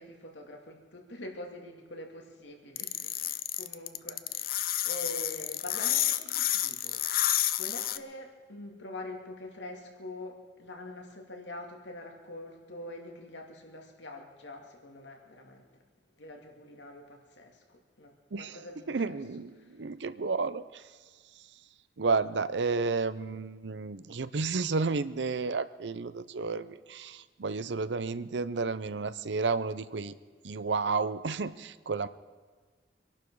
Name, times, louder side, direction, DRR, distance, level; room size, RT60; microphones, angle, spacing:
voice 1, 0.0-4.6 4.8-15.8 16.1-19.1 19.6-19.8, left 1 dB, 85° left, 2 dB, 2.5 m, -45 dB
sound 1, 2.8-8.0, left 13 dB, 55° left, 0.6 m, -29 dB
voice 2, 18.9-21.0 21.3-21.6 22.0-30.1 30.4-32.1, right 4 dB, 75° right, 14 dB, 0.6 m, -32 dB
25.5 x 11.5 x 4.7 m, 1.5 s
head